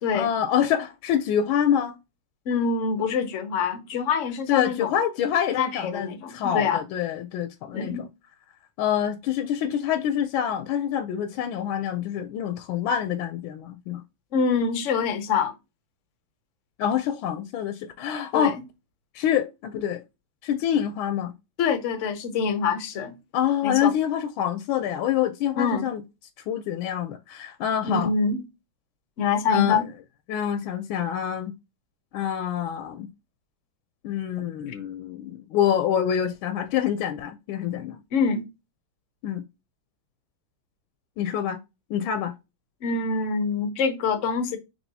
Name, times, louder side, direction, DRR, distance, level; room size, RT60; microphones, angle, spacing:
voice 1, 0.1-1.9 4.5-8.1 8.8-14.0 16.8-18.6 19.1-20.0 20.4-21.3 23.3-26.0 26.5-28.1 29.5-29.8 30.3-31.5 32.1-33.1 34.0-38.0 39.2-39.4 41.2-41.6 41.9-42.3, left 9 dB, 90° left, 1.4 m, -26 dB
voice 2, 2.5-4.9 5.5-6.8 7.7-8.1 14.3-15.5 18.3-18.5 21.6-23.2 23.6-23.9 25.6-25.9 27.8-28.4 29.2-29.9 38.1-38.5 42.8-44.6, left 5 dB, 70° left, 0.7 m, -25 dB
6.1 x 3.3 x 2.6 m
omnidirectional pair, 2.2 m